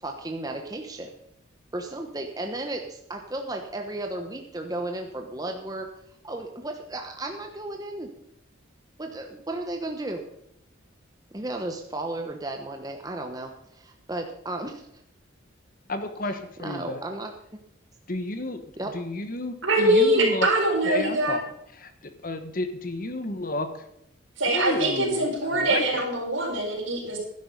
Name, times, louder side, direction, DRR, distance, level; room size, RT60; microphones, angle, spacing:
voice 1, 0.0-1.1 1.7-5.9 6.2-8.1 9.0-10.2 11.3-14.9 16.6-17.3 18.8-18.9, right 2 dB, 20° right, 3 dB, 1.0 m, -34 dB
voice 2, 15.9-17.0 18.1-18.6 18.9-20.5 20.8-21.4 21.7-21.9 22.2-23.9 24.5-26.1, left 2 dB, 45° left, 9 dB, 1.2 m, -31 dB
voice 3, 19.6-21.4 24.4-27.2, right 1 dB, 80° right, 0 dB, 4.7 m, -23 dB
12.5 x 10.5 x 5.3 m, 0.79 s
head